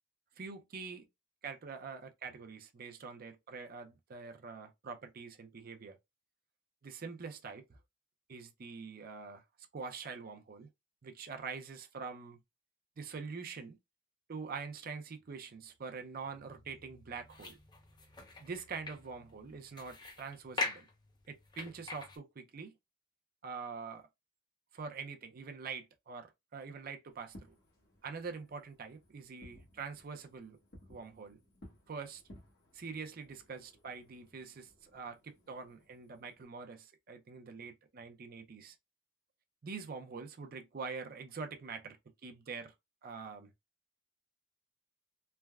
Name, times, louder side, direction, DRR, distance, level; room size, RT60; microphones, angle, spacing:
voice 1, 0.4-1.1 1.4-6.0 6.8-7.8 8.3-9.4 9.7-10.7 11.0-12.4 13.0-13.8 14.3-17.6 18.4-20.9 21.3-22.7 23.4-24.1 24.7-27.4 28.0-30.6 30.9-31.4 31.9-32.2 32.7-38.8 39.6-42.0 42.2-42.7 43.0-43.5, right 5 dB, 45° right, 0.5 m, -45 dB
sound 1, 15.6-22.2, left 3 dB, 20° left, 0.5 m, -44 dB
Fireworks, 27.2-36.4, equal, 50° left, 1.0 m, -60 dB
3.3 x 2.1 x 2.3 m
head